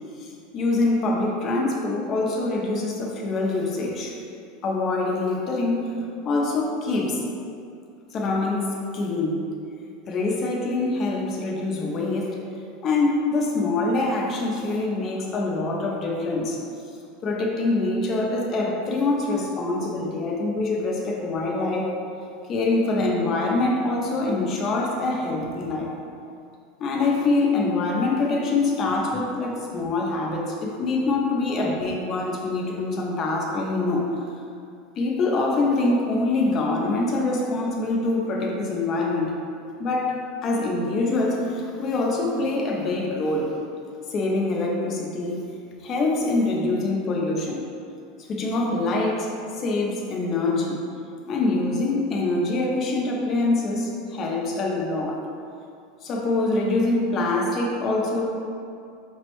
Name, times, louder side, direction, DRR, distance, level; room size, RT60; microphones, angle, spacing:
voice 1, 0.2-4.2 4.6-5.9 6.2-7.2 8.1-9.5 10.1-12.4 12.8-16.6 17.2-21.9 22.5-25.9 26.8-34.1 35.0-39.3 39.8-40.1 40.4-43.5 44.1-45.5 45.8-47.7 48.3-50.8 51.3-55.2 56.0-58.2, left 2 dB, 30° left, -1 dB, 0.5 m, -24 dB
5.2 x 2.1 x 2.9 m, 2.4 s
supercardioid pair, 165°, 0 cm